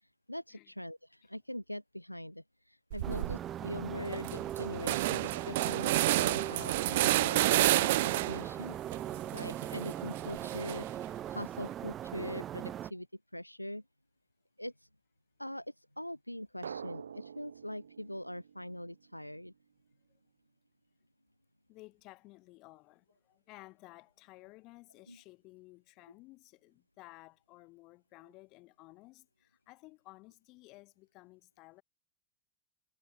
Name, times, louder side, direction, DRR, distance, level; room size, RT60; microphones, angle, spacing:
voice 1, 0.0-8.0 8.3-8.8 9.3-10.9 11.3-13.1 13.3-13.8 14.6-14.9 15.4-19.5 25.1-25.2, equal, 90° left, 0.3 m, -42 dB
sound 1, 2.9-3.4 3.8-3.9 4.1-8.5 8.9-11.0, right 17 dB, 55° right, 0.4 m, -30 dB
sound 2, 3.0-12.9, right 11 dB, 30° right, 1.1 m, -40 dB
voice 2, 8.2-8.9 21.7-31.8, left 22 dB, 40° left, 4.0 m, -56 dB
Drum, 16.6-19.3, right 7 dB, 70° right, 0.9 m, -47 dB
figure-of-eight pair, 90°, 0 cm